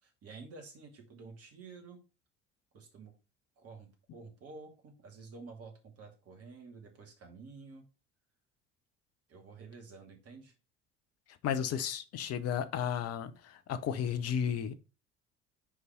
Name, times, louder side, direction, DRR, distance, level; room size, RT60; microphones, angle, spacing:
voice 1, 0.0-2.0 2.7-3.1 3.6-7.8 9.3-10.5, right 4 dB, 45° right, 2.5 m, -50 dB
voice 2, 11.4-14.7, left 8 dB, 50° left, 1.0 m, -33 dB
5.6 x 4.7 x 5.1 m
figure-of-eight pair, 60°, 33 cm